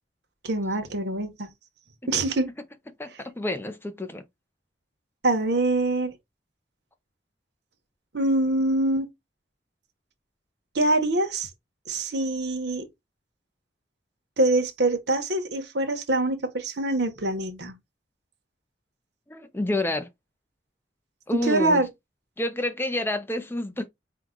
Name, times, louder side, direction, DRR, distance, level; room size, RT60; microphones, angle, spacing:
voice 1, 0.4-1.5 2.1-2.5 5.2-6.1 8.1-9.1 10.7-11.5 11.9-12.9 14.4-17.8 21.3-21.9, right 2 dB, 70° right, 1.0 m, -24 dB
voice 2, 3.0-4.2 19.3-20.1 21.3-21.8 22.4-23.9, left 1 dB, 15° left, 0.6 m, -29 dB
4.5 x 2.4 x 3.7 m
head